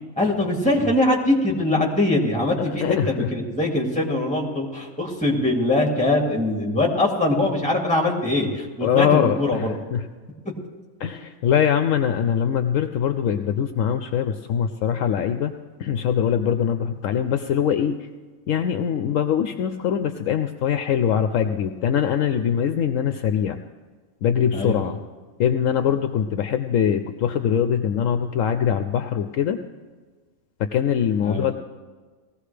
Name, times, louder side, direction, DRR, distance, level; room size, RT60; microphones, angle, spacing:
voice 1, 0.2-9.8 24.5-25.0 31.2-31.6, left 1 dB, 5° left, 0 dB, 2.0 m, -22 dB
voice 2, 2.8-3.3 8.8-9.6 9.9-10.0 11.0-15.5 15.8-18.0 18.5-23.6 24.2-25.0 25.4-29.6 30.6-31.5, left 8 dB, 70° left, 7 dB, 0.9 m, -22 dB
19.5 x 15.0 x 3.3 m, 1.4 s
omnidirectional pair, 1.5 m